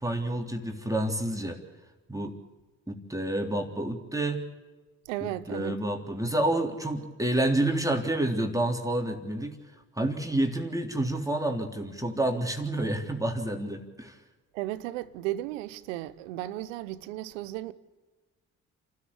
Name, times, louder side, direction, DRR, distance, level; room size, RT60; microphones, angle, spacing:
voice 1, 0.0-1.6 2.1-2.4 2.9-4.4 5.2-9.6 10.0-14.2, right 1 dB, 10° right, 3.6 m, -29 dB
voice 2, 5.0-5.7 14.5-17.7, right 15 dB, 85° right, 0.9 m, -35 dB
28.5 x 13.0 x 8.6 m
hypercardioid pair, 50°, 37 cm